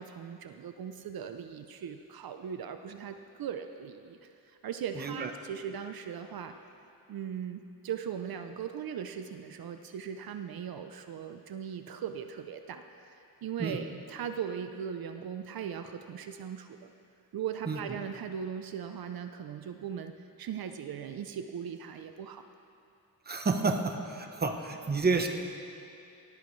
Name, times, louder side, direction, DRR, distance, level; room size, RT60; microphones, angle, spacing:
voice 1, 0.0-6.5 7.1-16.9 17.3-20.1 20.4-22.4, right 8 dB, 70° right, 7 dB, 0.6 m, -39 dB
voice 2, 5.0-5.3 13.6-13.8 17.7-17.8 23.3-25.3, right 4 dB, 25° right, 4 dB, 1.0 m, -30 dB
18.5 x 13.5 x 3.2 m, 2.6 s
wide cardioid pair, 125°, 37 cm